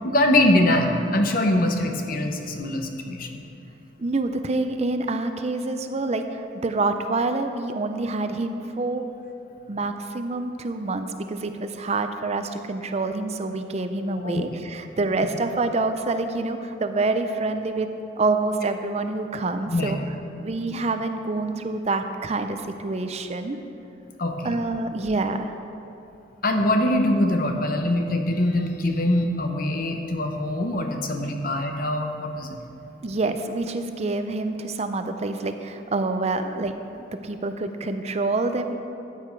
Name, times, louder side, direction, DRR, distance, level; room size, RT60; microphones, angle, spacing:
voice 1, 0.0-3.4 14.2-14.5 19.7-19.9 24.2-24.5 26.4-32.6, left 1 dB, 50° left, 4 dB, 1.0 m, -23 dB
voice 2, 4.0-9.1 9.7-17.9 18.2-20.0 20.4-23.6 24.4-25.5 33.0-36.7 37.1-38.7, right 3 dB, 35° right, 7 dB, 0.5 m, -27 dB
14.0 x 8.7 x 4.6 m, 2.8 s
head